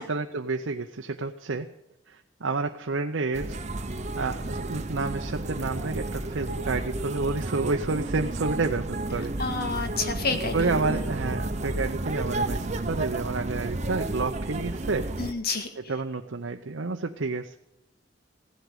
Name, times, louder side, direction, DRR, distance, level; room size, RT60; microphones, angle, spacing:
voice 1, 0.0-1.7 2.1-3.6 4.1-9.3 10.5-15.1 15.8-17.6, right 3 dB, 90° right, 4 dB, 0.8 m, -30 dB
sound 1, 3.3-15.3, right 2 dB, 35° right, 0.9 m, -32 dB
voice 2, 9.4-11.1 15.2-15.7, left 4 dB, 55° left, 7 dB, 1.8 m, -30 dB
15.5 x 8.2 x 9.1 m, 0.84 s
head